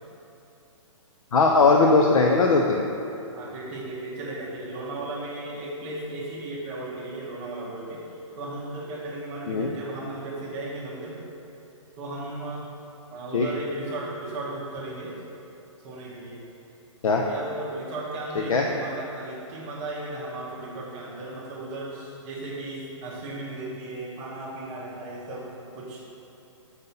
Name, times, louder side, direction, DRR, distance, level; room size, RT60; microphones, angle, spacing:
voice 1, 1.3-2.8 9.5-9.7 13.3-13.5 17.0-17.2 18.5-18.6, left 3 dB, 85° left, 1 dB, 0.6 m, -19 dB
voice 2, 3.3-11.2 12.0-12.6 13.1-15.2 15.8-16.4 17.3-26.0, right 2 dB, 10° right, -5 dB, 0.6 m, -36 dB
6.9 x 4.1 x 5.5 m, 2.9 s
hypercardioid pair, 175°, 17 cm